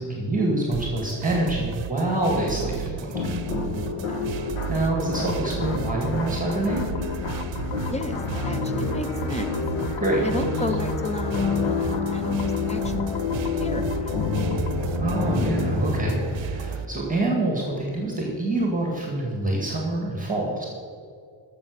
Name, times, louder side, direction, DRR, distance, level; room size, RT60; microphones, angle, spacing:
voice 1, 0.0-3.1 4.7-6.8 10.0-10.2 15.0-20.7, right 2 dB, 15° right, -1 dB, 1.9 m, -26 dB
sound 1, 0.7-16.8, right 9 dB, 65° right, 0.7 m, -34 dB
sound 2, 3.1-16.8, left 4 dB, 85° left, 1.8 m, -29 dB
voice 2, 4.1-4.5 7.8-9.5 10.2-14.6, left 1 dB, 15° left, 9 dB, 0.7 m, -34 dB
sound 3, 5.1-14.8, left 10 dB, 65° left, 0.8 m, -37 dB
13.0 x 7.0 x 6.7 m, 2.3 s
wide cardioid pair, 150°, 48 cm